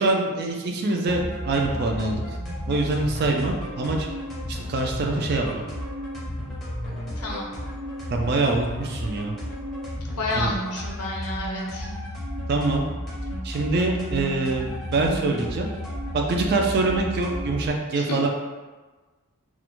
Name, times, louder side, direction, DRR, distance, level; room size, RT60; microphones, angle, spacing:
voice 1, 0.0-2.2 2.7-4.1 4.5-5.6 8.1-9.3 10.3-10.5 12.5-12.8 13.4-15.7 16.1-18.3, right 3 dB, 45° right, 1 dB, 0.3 m, -24 dB
sound 1, 1.1-17.7, equal, ahead, 0.5 m, -33 dB
voice 2, 7.2-7.5 10.1-11.9 17.9-18.3, left 2 dB, 80° left, -1 dB, 0.6 m, -30 dB
2.4 x 2.1 x 2.9 m, 1.3 s
head